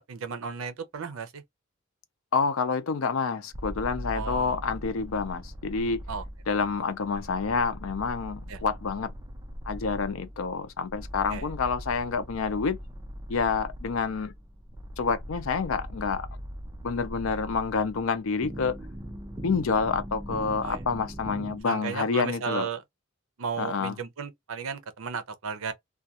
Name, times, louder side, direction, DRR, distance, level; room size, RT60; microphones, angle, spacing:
voice 1, 0.0-1.4 4.1-4.6 6.1-6.2 8.5-8.6 11.3-11.4 20.6-20.8 21.6-22.8 23.4-25.7, right 6 dB, 85° right, 0.5 m, -34 dB
voice 2, 2.3-6.0 6.5-9.1 9.7-12.8 13.3-14.3 15.0-16.3 16.8-18.8 19.4-22.7 23.6-24.0, left 5 dB, 80° left, 0.5 m, -28 dB
sound 1, 3.5-21.6, equal, 15° right, 0.4 m, -40 dB
2.3 x 2.2 x 2.8 m
head